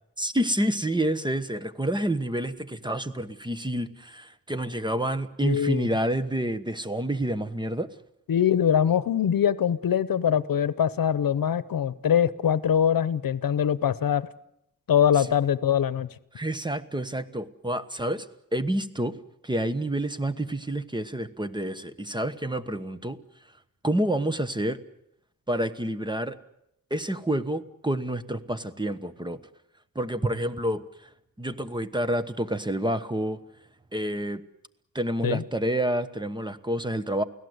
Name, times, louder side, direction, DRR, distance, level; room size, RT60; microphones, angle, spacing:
voice 1, 0.2-7.9 15.2-15.3 16.3-18.3 18.5-19.2 19.4-23.2 23.8-24.8 25.5-26.4 26.9-29.4 29.9-31.1 31.4-33.4 33.9-34.4 34.9-37.2, right 1 dB, 15° right, 12 dB, 1.1 m, -28 dB
voice 2, 5.4-5.9 8.3-14.3 14.9-16.1 35.2-35.4, left 9 dB, 80° left, 17 dB, 0.9 m, -23 dB
29.5 x 17.0 x 8.1 m, 0.79 s
wide cardioid pair, 110°, 34 cm